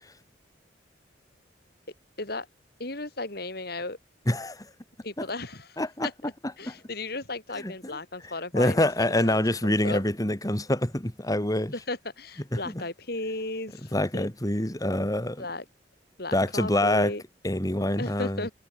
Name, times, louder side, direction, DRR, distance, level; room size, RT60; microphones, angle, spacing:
voice 1, 2.8-4.0 5.0-10.0 11.7-14.3 15.4-15.7 16.2-17.2 18.0-18.5, left 2 dB, 55° left, 5.2 m, -35 dB
voice 2, 4.3-4.7 5.8-6.1 6.6-6.7 7.5-8.0 8.2-11.7 12.5-12.8 13.9-15.4 16.3-17.1 17.4-18.5, left 1 dB, 20° left, 2.3 m, -26 dB
head